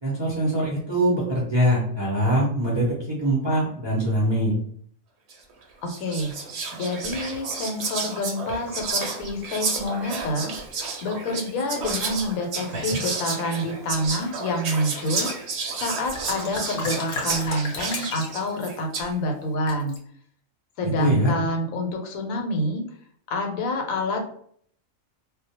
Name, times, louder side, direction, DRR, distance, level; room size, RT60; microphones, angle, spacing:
voice 1, 0.0-4.5 20.8-21.3, right 1 dB, 35° right, -7 dB, 0.4 m, -23 dB
Whispering, 5.3-5.5 5.9-19.1, right 4 dB, 65° right, 0.8 m, -31 dB
voice 2, 5.8-6.3 6.7-10.5 11.0-15.3 15.8-20.0 20.8-22.8 23.3-24.3, left 1 dB, 85° left, 3 dB, 1.0 m, -27 dB
sound 1, 12.8-13.2 13.9-14.5 15.8-15.9 16.1-18.6 19.7-20.0, left 3 dB, 55° left, 0.7 m, -35 dB
2.3 x 2.1 x 2.7 m, 0.62 s
omnidirectional pair, 1.4 m